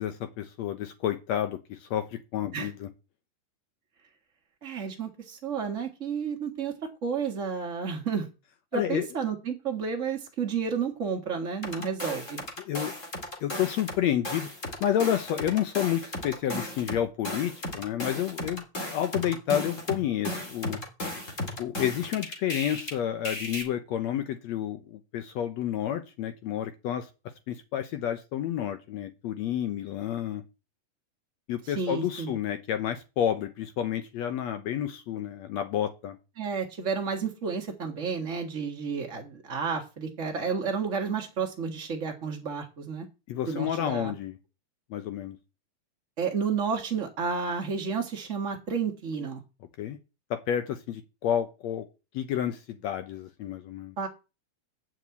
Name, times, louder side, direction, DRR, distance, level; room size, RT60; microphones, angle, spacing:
voice 1, 0.0-2.9 8.7-9.1 12.6-13.0 13.4-14.5 14.8-20.8 21.6-27.1 27.5-30.4 31.5-36.2 43.3-44.4 44.9-45.4 49.8-50.0 50.3-51.9 52.1-53.9, left 10 dB, 75° left, 9 dB, 1.6 m, -30 dB
voice 2, 4.6-6.7 7.0-8.3 8.7-12.4 31.7-32.3 36.4-43.0 43.5-44.1 46.2-49.4 54.0-54.1, right 6 dB, 55° right, 2 dB, 0.8 m, -31 dB
sound 1, 11.6-14.0 14.2-22.9 23.2-23.6, left 1 dB, 25° left, 2.4 m, -35 dB
9.1 x 6.3 x 8.3 m, 0.30 s
omnidirectional pair, 4.2 m